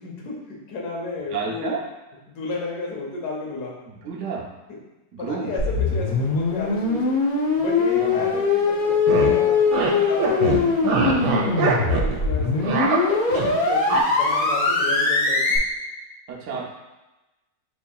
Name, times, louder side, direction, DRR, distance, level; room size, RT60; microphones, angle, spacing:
voice 1, 0.0-1.7 2.3-4.0 5.2-7.1 7.6-10.6 11.1-13.0 13.3-15.5, left 3 dB, 70° left, -2 dB, 1.4 m, -33 dB
voice 2, 1.3-1.9 3.9-4.5 5.1-5.5 7.9-8.3 11.3-11.7 16.3-16.7, right 5 dB, 60° right, -1 dB, 0.9 m, -31 dB
sound 1, 5.6-15.6, left 4 dB, 85° left, 0.4 m, -21 dB
sound 2, 8.9-9.4 9.7-9.9 10.2-12.2 12.4-13.5 13.9-14.0, right 4 dB, 75° right, 1.3 m, -23 dB
7.1 x 2.7 x 2.2 m, 1.0 s
omnidirectional pair, 1.8 m